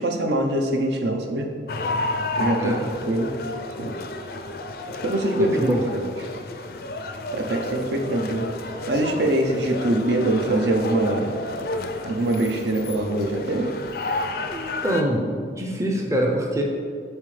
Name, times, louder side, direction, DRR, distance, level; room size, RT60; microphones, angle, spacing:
voice 1, 0.0-1.5 2.0-2.8 3.1-3.3 3.8-3.9 5.0-6.1 7.3-8.5 8.9-11.3 12.0-13.7, right 1 dB, 70° right, 3 dB, 0.6 m, -23 dB
sound 1, 1.7-15.0, left 2 dB, 55° left, 0.4 m, -31 dB
voice 2, 5.3-6.0 14.5-16.6, equal, 15° right, 0 dB, 0.5 m, -25 dB
7.2 x 4.2 x 3.3 m, 2.2 s
head